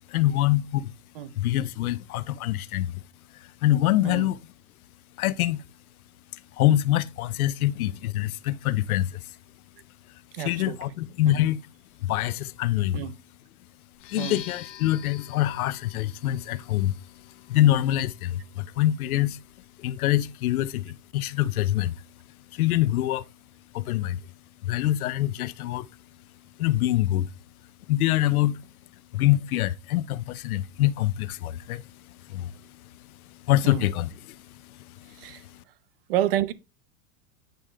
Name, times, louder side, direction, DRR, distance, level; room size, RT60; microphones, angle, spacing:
voice 1, 0.1-0.9 1.4-3.0 3.6-4.4 5.2-5.6 6.6-9.2 10.4-11.6 12.0-13.1 14.1-16.9 17.5-19.4 19.8-22.0 22.5-23.2 23.7-24.2 24.6-25.9 26.6-27.3 27.9-28.6 29.1-31.8 32.3-32.5 33.5-34.4 34.8-35.6, left 14 dB, 85° left, 0.7 m, -25 dB
voice 2, 10.3-10.8 11.2-11.4 12.9-13.2 14.2-14.4 33.6-33.9 35.2-35.4 36.1-36.5, right 12 dB, 45° right, 0.6 m, -29 dB
sound 1, 13.9-21.7, left 12 dB, 25° left, 0.7 m, -48 dB
9.2 x 5.0 x 3.3 m
supercardioid pair, 180°, 42 cm